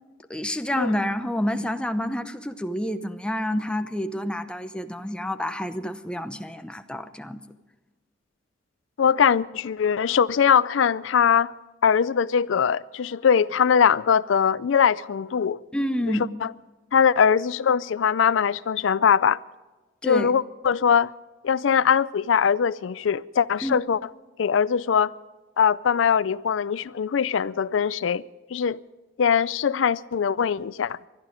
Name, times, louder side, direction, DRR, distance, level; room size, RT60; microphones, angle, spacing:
voice 1, 0.3-7.4 15.7-16.2 20.0-20.3 23.6-23.9, equal, 5° left, 0.8 m, -28 dB
voice 2, 9.0-11.5 11.8-15.6 16.0-16.2 16.9-19.4 20.0-21.1 21.4-24.0 24.4-25.1 25.6-28.2 28.5-28.8 29.2-31.0, left 7 dB, 80° left, 0.4 m, -21 dB
21.0 x 12.5 x 5.1 m
head